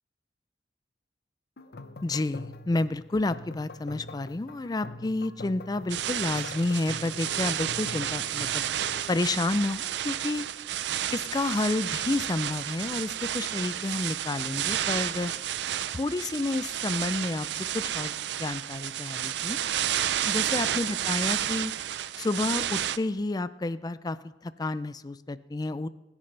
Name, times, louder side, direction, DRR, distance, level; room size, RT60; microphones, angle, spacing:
sound 1, 1.6-9.1, left 2 dB, 55° left, 0.7 m, -44 dB
voice 1, 2.0-8.6 9.1-10.5 11.1-15.3 15.9-18.1 18.4-19.6 20.2-21.7 22.2-24.2 24.4-25.9, left 2 dB, 20° left, 15 dB, 0.4 m, -30 dB
sound 2, 5.9-23.0, right 11 dB, 65° right, 0.4 m, -31 dB
22.0 x 9.8 x 3.3 m, 1.0 s
head